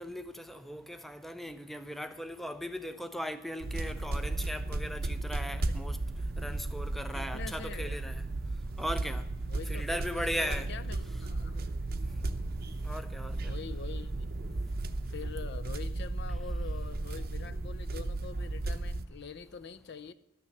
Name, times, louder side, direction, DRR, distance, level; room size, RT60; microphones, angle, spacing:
voice 1, 0.0-6.0 6.4-8.2 8.8-9.2 9.7-10.7 12.8-13.5, equal, ahead, 0.5 m, -38 dB
sound 1, 3.6-19.0, right 2 dB, 45° right, 0.7 m, -35 dB
voice 2, 7.1-8.0 9.5-11.6 13.4-14.3 15.1-20.1, left 5 dB, 55° left, 0.5 m, -45 dB
12.5 x 6.7 x 9.8 m
head